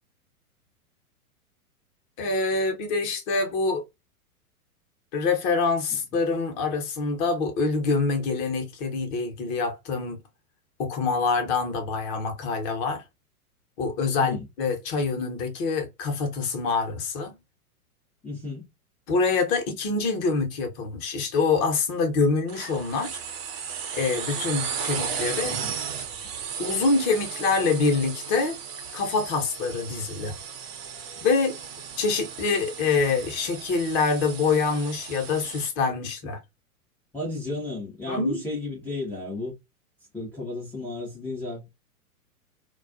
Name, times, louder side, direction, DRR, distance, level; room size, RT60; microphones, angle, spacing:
voice 1, 2.2-3.8 5.1-10.2 10.8-13.0 13.8-17.3 19.1-23.2 23.9-25.6 26.6-28.6 28.9-30.3 31.2-31.6 32.0-36.4 38.1-38.4, left 4 dB, 30° left, 0.8 m, -25 dB
voice 2, 18.2-18.7 25.4-25.7 37.1-39.6 40.1-41.7, left 2 dB, 5° left, 0.5 m, -33 dB
sound 1, 22.5-35.7, right 7 dB, 40° right, 0.7 m, -35 dB
2.3 x 2.2 x 2.5 m
figure-of-eight pair, 105°, 45 cm